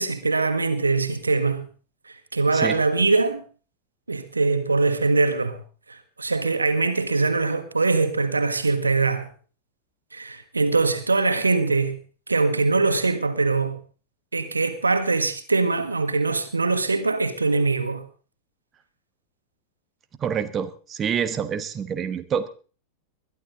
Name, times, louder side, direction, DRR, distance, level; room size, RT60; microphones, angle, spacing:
voice 1, 0.0-1.7 2.3-3.4 4.1-5.6 5.9-9.3 10.1-12.0 12.3-13.8 14.3-18.0, right 3 dB, 80° right, 1.5 m, -22 dB
voice 2, 20.2-22.5, right 7 dB, 25° right, 1.0 m, -27 dB
21.0 x 12.0 x 3.9 m
figure-of-eight pair, 90°, 0 cm